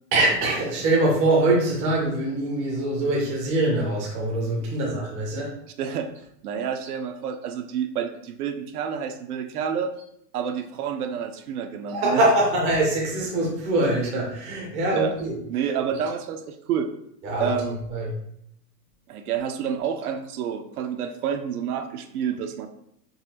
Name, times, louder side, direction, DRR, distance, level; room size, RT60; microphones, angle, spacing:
voice 1, 0.1-5.5 11.9-15.4 17.2-17.5 17.9-18.1, right 2 dB, 15° right, -3 dB, 0.4 m, -23 dB
voice 2, 5.8-6.1 6.4-9.9 10.3-12.2 14.9-15.2 15.5-16.9 17.4-17.8 19.1-22.7, right 7 dB, 65° right, 7 dB, 0.5 m, -29 dB
3.9 x 2.4 x 2.7 m, 0.72 s
hypercardioid pair, 135°, 49 cm